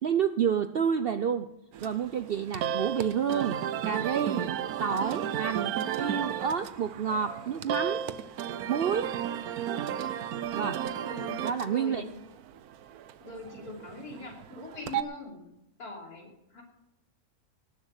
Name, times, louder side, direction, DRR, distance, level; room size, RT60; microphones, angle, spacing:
voice 1, 0.0-1.5 1.8-3.6 3.8-4.5 4.8-8.0 8.7-9.1 10.5-10.8 11.4-12.0, right 7 dB, 65° right, 10 dB, 0.6 m, -29 dB
sound 1, 1.7-15.0, right 9 dB, 80° right, 1.2 m, -34 dB
voice 2, 11.0-12.1 13.2-15.4 15.8-16.6, left 2 dB, 85° left, -1 dB, 3.7 m, -42 dB
18.0 x 7.5 x 6.5 m, 0.83 s
omnidirectional pair, 1.6 m